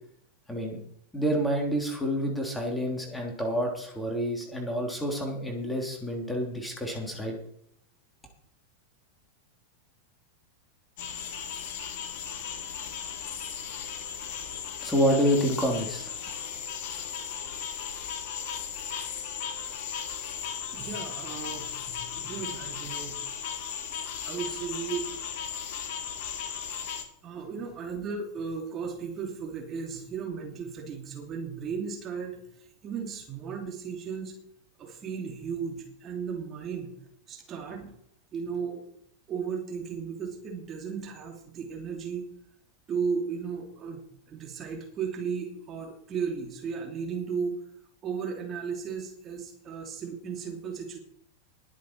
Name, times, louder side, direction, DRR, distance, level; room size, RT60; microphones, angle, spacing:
voice 1, 0.5-0.8 1.1-7.3 14.8-16.1, equal, 5° left, 1 dB, 3.3 m, -28 dB
sound 1, 11.0-27.0, left 8 dB, 50° left, 1.9 m, -36 dB
voice 2, 20.7-21.7 22.1-23.2 24.2-25.1 27.2-34.3 34.8-36.9 37.3-37.9 38.3-38.8 39.3-42.3 42.9-47.6 48.0-51.0, right 6 dB, 30° right, 1 dB, 2.9 m, -35 dB
20.5 x 7.4 x 4.6 m, 0.68 s
figure-of-eight pair, 90°, 0 cm